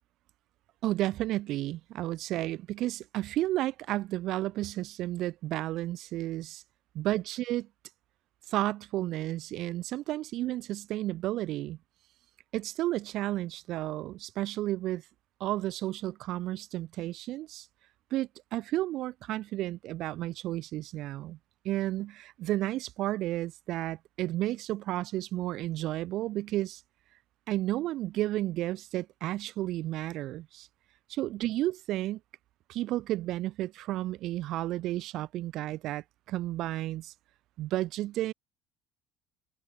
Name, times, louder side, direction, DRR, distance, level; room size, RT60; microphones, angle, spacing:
voice 1, 0.8-6.6 6.9-7.7 8.5-11.8 12.5-15.0 15.4-17.7 18.1-21.4 21.6-26.8 27.5-30.7 31.1-32.2 32.7-37.1 37.6-38.3, right 15 dB, 65° right, 4.9 m, -32 dB
supercardioid pair, 105°, 0 cm